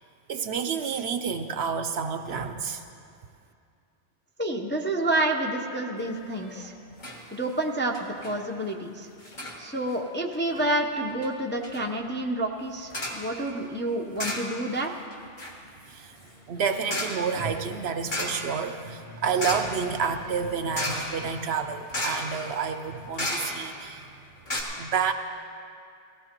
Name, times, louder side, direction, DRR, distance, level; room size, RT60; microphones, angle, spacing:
voice 1, 0.3-2.8 15.9-16.2 16.5-24.1 24.8-25.1, right 6 dB, 65° right, 7 dB, 0.8 m, -29 dB
voice 2, 4.4-6.7 7.3-9.1 9.6-15.0, right 1 dB, 15° left, 1 dB, 0.5 m, -29 dB
sound 1, 6.3-6.7 7.0-7.2 7.5-7.6 7.9-8.4 9.2-9.6 10.3-10.7 11.2-11.3 11.6-11.9 12.9-13.3 14.2-14.8 15.1-23.9 24.2-24.3 24.5-24.6, left 1 dB, 40° left, 1.7 m, -34 dB
18.0 x 16.0 x 2.9 m, 2.4 s
omnidirectional pair, 1.2 m